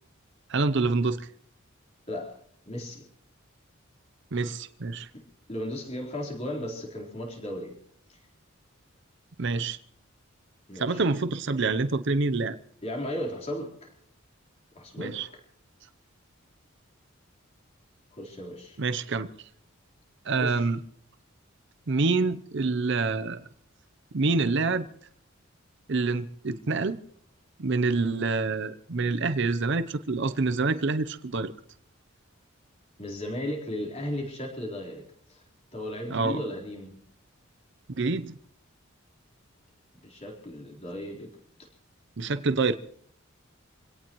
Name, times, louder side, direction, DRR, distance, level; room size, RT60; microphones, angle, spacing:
voice 1, 0.5-1.3 4.3-5.1 9.4-9.8 10.8-12.6 15.0-15.3 18.8-19.3 20.3-20.8 21.9-23.4 24.1-24.9 25.9-27.0 27.6-31.5 36.1-36.4 38.0-38.4 42.2-42.8, right 3 dB, 60° right, 0.7 m, -26 dB
voice 2, 2.1-2.4 2.6-3.1 5.1-7.8 8.1-8.2 10.7-11.0 12.8-13.9 14.7-15.4 18.1-18.8 20.4-20.6 33.0-35.0 35.3-35.4 35.7-37.0 40.0-41.3 41.6-41.7, left 1 dB, 30° left, 4.0 m, -35 dB
26.0 x 17.5 x 3.1 m
head